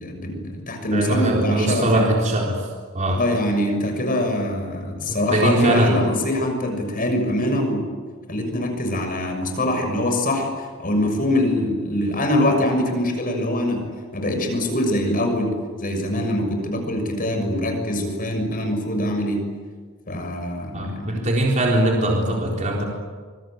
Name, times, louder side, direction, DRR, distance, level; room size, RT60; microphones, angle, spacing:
voice 1, 0.0-2.1 3.1-7.9 8.3-13.8 14.1-19.4 20.1-21.3, left 1 dB, 40° left, 5 dB, 6.5 m, -23 dB
voice 2, 0.9-2.7 2.9-3.2 5.1-6.0 20.7-22.8, right 1 dB, 35° right, -1 dB, 4.0 m, -21 dB
26.0 x 24.0 x 9.2 m, 1.5 s
head